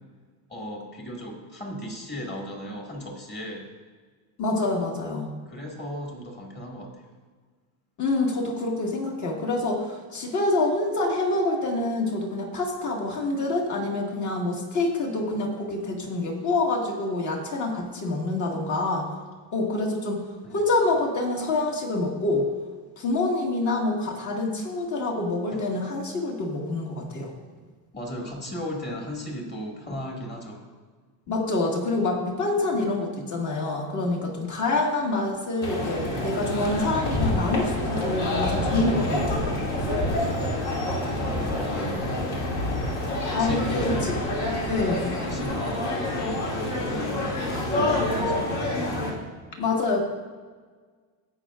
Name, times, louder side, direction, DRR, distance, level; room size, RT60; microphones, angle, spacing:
voice 1, 0.5-3.7 5.5-7.0 20.4-20.6 25.5-25.6 27.9-30.6 41.2-42.1 43.2-44.2 45.2-48.5, equal, 25° left, 0 dB, 2.0 m, -36 dB
voice 2, 4.4-5.3 8.0-19.1 19.5-20.2 20.5-22.5 23.0-27.3 31.3-39.6 43.3-44.2 44.7-45.1 49.6-50.0, left 2 dB, 40° left, 0 dB, 1.9 m, -26 dB
sound 1, 35.6-49.1, left 1 dB, 55° left, 2.5 m, -27 dB
17.0 x 5.8 x 2.5 m, 1.5 s
cardioid pair, 130°, 44 cm